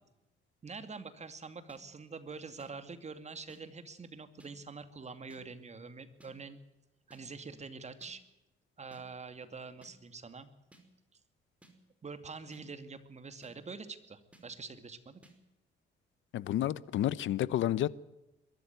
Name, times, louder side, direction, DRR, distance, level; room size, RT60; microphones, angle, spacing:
voice 1, 0.6-6.6 7.1-8.2 8.8-10.5 12.0-15.2, right 4 dB, 35° right, 2.5 m, -45 dB
sound 1, 1.7-1.8 2.6-2.7 3.5-3.6 4.4-4.5 5.3-5.4 6.2-6.3 7.1-7.2 8.0-8.1 8.9-9.0 9.8-9.9 10.7-10.8 11.6-11.7 12.5-12.6 13.4-13.5 14.3-14.4 15.2-15.3, right 2 dB, 5° right, 5.1 m, -59 dB
voice 2, 16.3-17.9, left 12 dB, 75° left, 0.9 m, -30 dB
22.5 x 13.5 x 9.5 m
cardioid pair, 90°, 20 cm